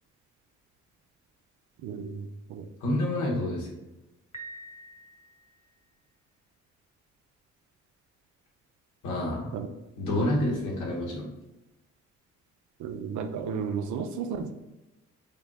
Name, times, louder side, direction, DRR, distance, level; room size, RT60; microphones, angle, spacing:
voice 1, 1.8-2.7 9.5-9.7 10.2-10.5 12.8-14.5, right 6 dB, 75° right, 7 dB, 0.6 m, -33 dB
voice 2, 2.8-3.7 9.0-9.5 10.0-11.2, left 1 dB, 80° left, -3 dB, 1.3 m, -28 dB
Piano, 4.3-5.8, right 2 dB, 25° left, 1.2 m, -46 dB
5.1 x 2.9 x 2.4 m, 1.0 s
supercardioid pair, 55°, 30 cm